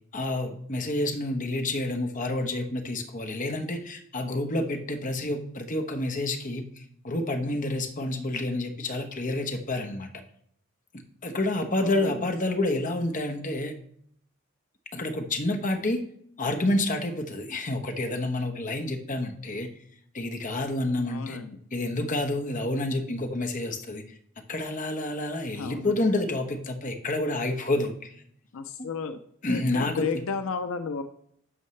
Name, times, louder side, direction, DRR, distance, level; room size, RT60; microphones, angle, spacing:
voice 1, 0.1-10.1 11.2-13.7 14.9-16.0 16.4-19.7 20.1-21.4 21.7-24.0 24.5-28.1 28.8-28.9 29.4-30.1, left 2 dB, 40° left, 6 dB, 1.1 m, -29 dB
voice 2, 11.8-12.2 21.1-21.6 25.6-26.0 28.5-29.2 29.5-31.0, left 5 dB, 80° left, 9 dB, 0.5 m, -33 dB
11.0 x 6.3 x 3.2 m, 0.67 s
head